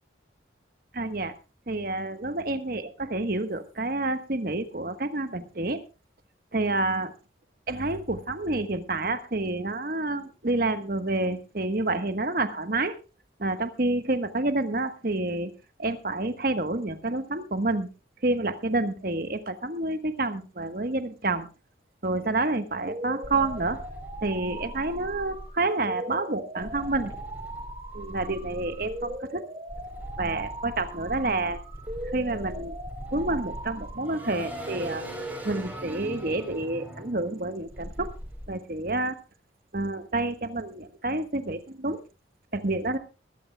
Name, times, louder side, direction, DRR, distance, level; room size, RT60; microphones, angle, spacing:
voice 1, 0.9-1.3 1.7-2.8 3.1-5.8 6.5-7.1 7.7-12.9 13.4-15.5 15.8-17.9 18.2-21.5 22.0-23.8 24.2-27.1 27.9-29.4 30.2-31.6 32.1-32.8 33.1-35.0 35.4-38.1 38.5-39.2 39.7-42.0 42.5-43.0, right 2 dB, 50° right, 10 dB, 1.2 m, -28 dB
sound 1, 22.9-34.9, right 1 dB, 30° right, 1.8 m, -40 dB
sound 2, 23.2-25.5 26.6-29.2 29.7-38.5, equal, 10° right, 5.1 m, -40 dB
22.0 x 14.0 x 2.3 m, 0.30 s
head